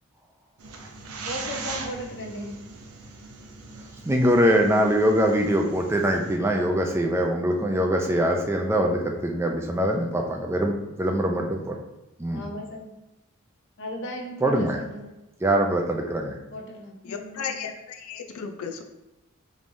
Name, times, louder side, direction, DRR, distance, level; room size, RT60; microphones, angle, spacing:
sound 1, 0.6-6.4, right 3 dB, 85° right, 0.6 m, -40 dB
voice 1, 1.2-2.6 12.3-12.9 13.8-15.1 16.5-17.5, left 1 dB, 60° left, 1 dB, 0.8 m, -36 dB
voice 2, 4.1-11.8 12.2-12.4 14.4-14.8 15.4-16.4, equal, 10° right, 2 dB, 0.4 m, -23 dB
voice 3, 17.0-18.8, left 6 dB, 75° left, 6 dB, 0.4 m, -34 dB
5.2 x 3.1 x 2.6 m, 0.98 s
head